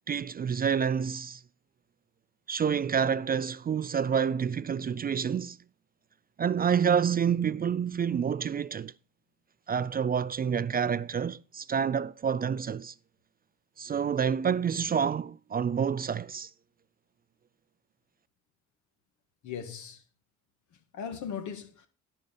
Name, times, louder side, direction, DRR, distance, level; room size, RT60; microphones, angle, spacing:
voice 1, 0.1-1.4 2.5-5.6 6.4-8.9 9.7-12.9 13.8-16.5, right 7 dB, 30° right, 0.4 m, -28 dB
voice 2, 19.4-20.0 20.7-21.9, left 7 dB, 75° left, 1.9 m, -39 dB
11.5 x 5.3 x 5.3 m
cardioid pair, 90°, 30 cm